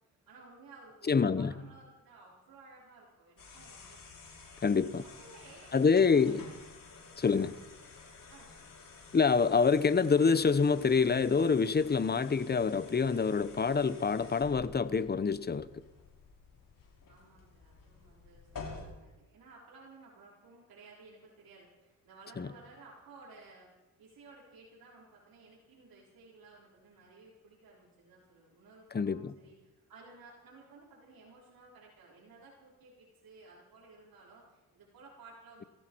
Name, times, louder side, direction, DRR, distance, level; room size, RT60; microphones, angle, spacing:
voice 1, 0.3-4.2 5.0-6.4 7.3-7.6 8.3-8.8 17.1-23.7 24.0-29.6 29.9-35.7, right 3 dB, 75° right, 4.2 m, -56 dB
voice 2, 1.1-1.5 4.6-5.0 5.7-6.4 7.2-7.5 9.1-15.7 22.4-22.5 28.9-29.3, left 5 dB, 30° left, 0.9 m, -26 dB
sound 1, 3.4-18.8, left 4 dB, 65° left, 5.5 m, -51 dB
20.0 x 15.5 x 4.6 m
cardioid pair, 75°, 35 cm